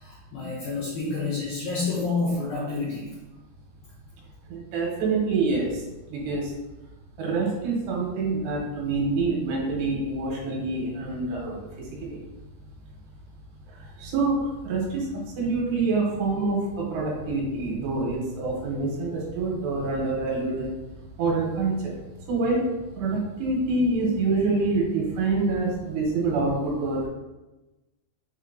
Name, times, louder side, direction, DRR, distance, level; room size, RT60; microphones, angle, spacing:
voice 1, 0.0-3.1, left 3 dB, 80° left, -5 dB, 2.0 m, -29 dB
voice 2, 4.5-5.8 6.1-6.5 7.2-12.2 13.7-20.7 21.2-21.9 22.3-27.1, right 3 dB, 80° right, -2 dB, 2.9 m, -26 dB
6.4 x 2.6 x 2.6 m, 1.1 s
omnidirectional pair, 5.0 m